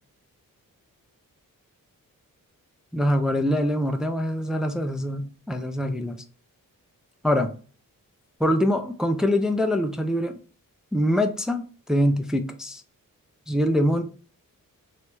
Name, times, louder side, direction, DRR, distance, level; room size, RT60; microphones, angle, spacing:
voice 1, 2.9-6.2 7.2-7.5 8.4-10.4 10.9-12.8 13.5-14.0, equal, ahead, 0.4 m, -24 dB
3.3 x 3.0 x 4.5 m
wide cardioid pair, 115°, 34 cm